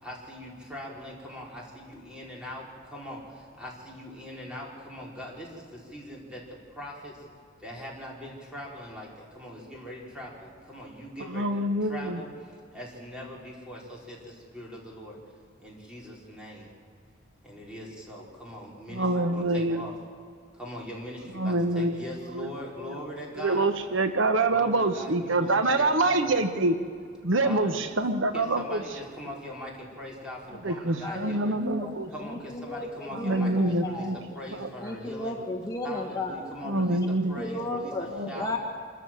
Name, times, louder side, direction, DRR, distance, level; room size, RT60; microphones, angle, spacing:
voice 1, 0.0-7.3 7.6-15.2 15.6-16.7 17.4-20.0 20.5-23.7 24.5-26.4 27.4-27.9 28.3-31.6 32.1-35.4 35.8-38.5, equal, 5° right, -3 dB, 4.7 m, -41 dB
voice 2, 11.3-12.2 18.9-19.9 21.4-22.1 22.3-22.5 22.9-23.0 23.4-26.8 27.2-28.8 30.6-32.1 33.1-34.2 34.5-34.7 36.6-37.4 38.1-38.4, right 2 dB, 75° right, 8 dB, 1.1 m, -26 dB
voice 3, 31.0-31.9 32.2-34.2 34.8-36.4 37.4-38.6, left 2 dB, 20° left, 1 dB, 1.6 m, -34 dB
26.0 x 14.0 x 7.7 m, 2.3 s
head